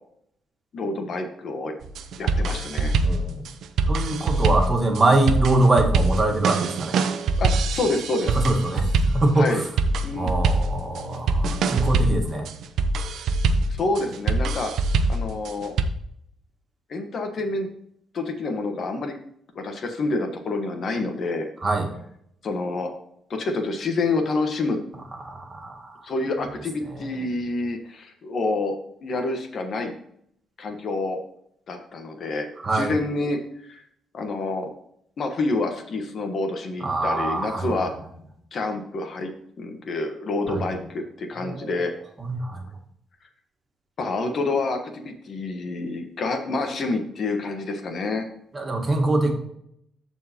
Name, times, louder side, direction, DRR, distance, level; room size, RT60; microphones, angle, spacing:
voice 1, 0.7-1.7 2.2-2.9 7.4-8.4 9.3-9.6 10.0-10.3 13.1-13.3 13.8-14.7 15.1-15.8 16.9-17.7 18.1-19.1 19.5-21.5 22.4-22.9 23.3-24.8 26.0-28.8 29.0-29.9 30.6-31.2 31.7-32.5 32.7-33.8 34.1-34.7 35.2-37.9 38.5-41.9 44.0-48.3, left 2 dB, 55° left, 5 dB, 1.2 m, -28 dB
sound 1, 1.8-15.8, right 3 dB, 75° right, 0.7 m, -24 dB
voice 2, 3.0-3.4 3.9-7.0 8.3-9.6 10.1-12.5 21.6-21.9 25.2-25.9 32.6-32.9 36.8-37.7 40.5-40.7 41.3-41.7 42.2-42.6 48.5-49.3, right 2 dB, 30° right, 2 dB, 2.0 m, -23 dB
13.5 x 4.7 x 2.9 m, 0.72 s
cardioid pair, 90°, 0 cm